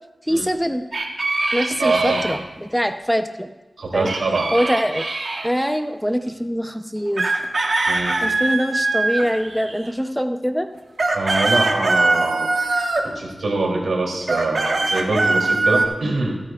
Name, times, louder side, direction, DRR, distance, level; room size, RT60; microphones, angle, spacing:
voice 1, 0.2-0.8 1.5-3.5 3.9-4.1 4.5-5.0 5.4-7.4 8.2-10.7, equal, ahead, 7 dB, 0.8 m, -23 dB
sound 1, 0.9-2.4 4.0-5.5 7.2-9.9 10.7-13.1 14.2-15.9, right 2 dB, 65° right, 1.4 m, -22 dB
voice 2, 1.8-2.3 3.8-4.5 7.9-8.1 11.1-12.5 13.0-16.4, right 3 dB, 90° right, -1 dB, 3.2 m, -23 dB
24.0 x 8.9 x 2.5 m, 1.2 s
cardioid pair, 40°, 0 cm